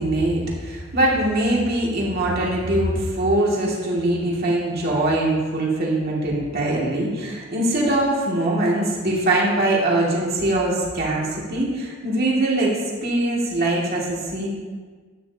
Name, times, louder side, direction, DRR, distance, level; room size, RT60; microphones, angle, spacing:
voice 1, 0.0-12.7 13.0-14.5, right 1 dB, 50° right, -4 dB, 2.3 m, -22 dB
12.0 x 9.2 x 2.9 m, 1.5 s
head